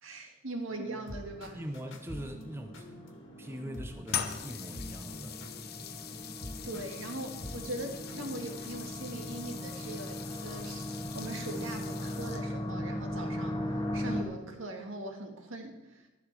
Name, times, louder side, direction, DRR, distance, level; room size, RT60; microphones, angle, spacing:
voice 1, 0.0-1.6 6.6-13.6 13.9-16.1, right 2 dB, 75° right, 4 dB, 1.9 m, -41 dB
sound 1, 0.7-8.7, equal, 70° left, 2.0 m, -47 dB
sound 2, 1.1-14.2, left 1 dB, 20° left, 1.9 m, -39 dB
voice 2, 1.5-2.9 3.4-5.4, equal, 10° right, 5 dB, 0.8 m, -41 dB
sound 3, 4.1-12.7, left 9 dB, 55° left, 0.8 m, -42 dB
12.5 x 11.5 x 4.6 m, 1.1 s
head